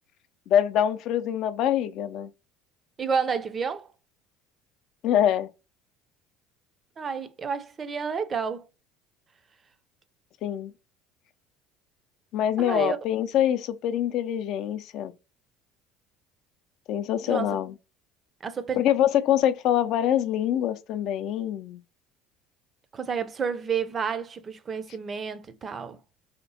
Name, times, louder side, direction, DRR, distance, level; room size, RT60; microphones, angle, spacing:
voice 1, 0.5-2.3 5.0-5.5 10.4-10.7 12.3-15.1 16.9-17.7 18.8-21.8, left 10 dB, 60° left, 0.4 m, -24 dB
voice 2, 3.0-3.9 7.0-8.6 12.6-13.0 17.3-17.6 18.4-18.8 22.9-26.0, right 6 dB, 35° right, 0.5 m, -30 dB
3.3 x 2.8 x 2.7 m
hypercardioid pair, 80°, 0 cm